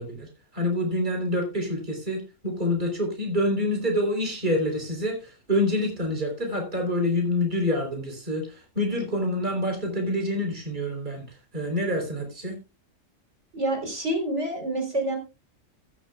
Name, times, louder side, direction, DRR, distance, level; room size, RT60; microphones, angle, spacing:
voice 1, 0.0-12.6, left 1 dB, 35° right, 3 dB, 3.9 m, -27 dB
voice 2, 13.5-15.2, right 1 dB, 60° right, 3 dB, 4.0 m, -27 dB
15.5 x 12.0 x 2.3 m, 0.29 s
omnidirectional pair, 1.4 m